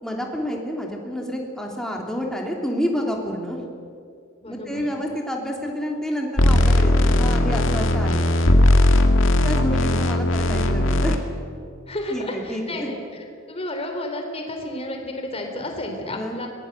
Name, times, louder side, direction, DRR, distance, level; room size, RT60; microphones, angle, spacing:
voice 1, 0.0-3.6 4.5-8.3 9.4-11.2 12.1-12.9 16.1-16.4, equal, 5° left, 0 dB, 3.1 m, -29 dB
voice 2, 4.4-4.9 9.8-10.0 11.9-16.5, left 1 dB, 30° left, 3 dB, 3.8 m, -32 dB
sound 1, 6.4-11.2, left 1 dB, 65° left, 2.0 m, -18 dB
22.0 x 19.5 x 7.9 m, 2.2 s
head